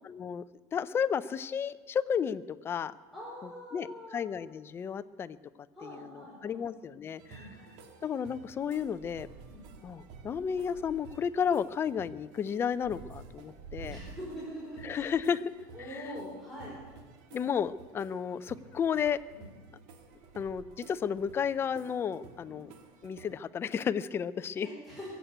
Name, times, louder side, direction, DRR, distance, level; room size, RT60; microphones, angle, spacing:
voice 1, 0.0-0.4 0.7-2.9 3.7-5.4 5.8-7.6 8.0-9.3 9.8-14.0 14.8-15.4 15.9-16.0 17.3-19.2 20.4-22.7 23.0-24.7, left 7 dB, 25° left, 15 dB, 0.5 m, -32 dB
voice 2, 3.1-4.3 5.7-6.6 7.3-7.6 9.5-9.7 13.9-15.1 15.7-16.7 19.3-19.5 24.6-25.1, equal, ahead, -8 dB, 5.0 m, -44 dB
sound 1, 7.2-23.4, right 5 dB, 70° right, 2.2 m, -51 dB
22.0 x 8.1 x 8.0 m, 1.4 s
cardioid pair, 140°, 9 cm